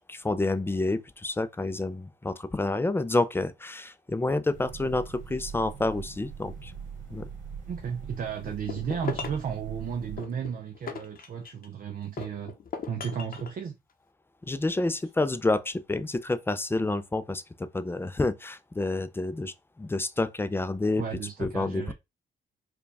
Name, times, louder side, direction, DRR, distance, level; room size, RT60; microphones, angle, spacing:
voice 1, 0.1-6.7 7.1-7.3 14.4-21.0 21.4-21.9, left 2 dB, 10° left, 0.5 m, -29 dB
sound 1, 4.5-10.2, right 6 dB, 70° right, 1.6 m, -42 dB
voice 2, 7.7-12.5 12.9-13.8 21.0-21.9, right 7 dB, 45° right, 0.6 m, -34 dB
sound 2, 8.5-9.5 10.2-11.7 12.2-13.5, left 6 dB, 45° left, 0.8 m, -38 dB
4.7 x 2.3 x 3.4 m
cardioid pair, 90°, 20 cm